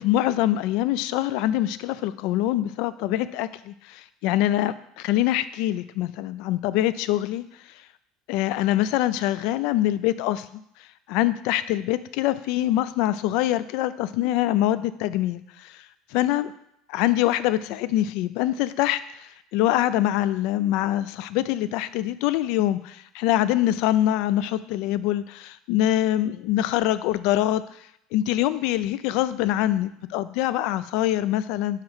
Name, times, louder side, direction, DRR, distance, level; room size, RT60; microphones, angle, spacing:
voice 1, 0.0-7.4 8.3-10.6 11.1-15.8 16.1-16.5 16.9-27.6 28.1-31.8, left 13 dB, 65° left, 15 dB, 0.3 m, -24 dB
4.9 x 4.3 x 5.6 m, 0.74 s
cardioid pair, 155°, 0 cm